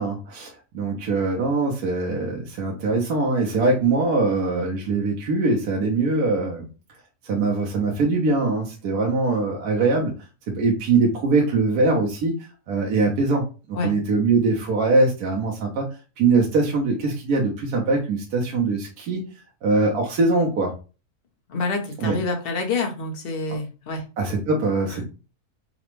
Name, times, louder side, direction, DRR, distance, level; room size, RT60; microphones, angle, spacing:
voice 1, 0.0-6.7 7.2-10.1 10.5-12.3 12.7-15.9 16.2-19.2 19.6-20.7 22.0-22.1 24.2-25.1, right 3 dB, 70° right, -1 dB, 1.2 m, -22 dB
voice 2, 21.5-24.0 24.9-25.0, left 3 dB, 45° left, 2 dB, 0.9 m, -27 dB
4.9 x 2.2 x 3.0 m, 0.33 s
omnidirectional pair, 1.7 m